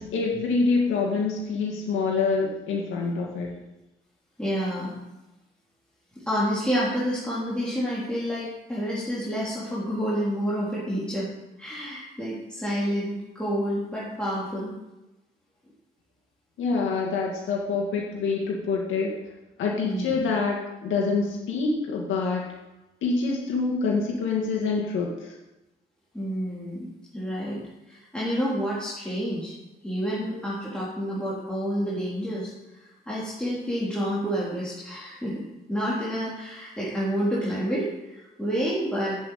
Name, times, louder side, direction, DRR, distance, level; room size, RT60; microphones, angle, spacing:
voice 1, 0.0-3.5 16.6-19.1 19.6-22.4 23.0-25.4, left 4 dB, 80° left, -2 dB, 2.1 m, -26 dB
voice 2, 4.4-5.0 6.1-11.3 11.6-14.7 19.8-20.1 26.1-26.9 27.1-27.6 27.9-29.5 29.8-32.8 33.0-39.2, equal, 5° left, -8 dB, 3.5 m, -29 dB
8.2 x 7.8 x 8.8 m, 0.99 s
cardioid pair, 90°, 20 cm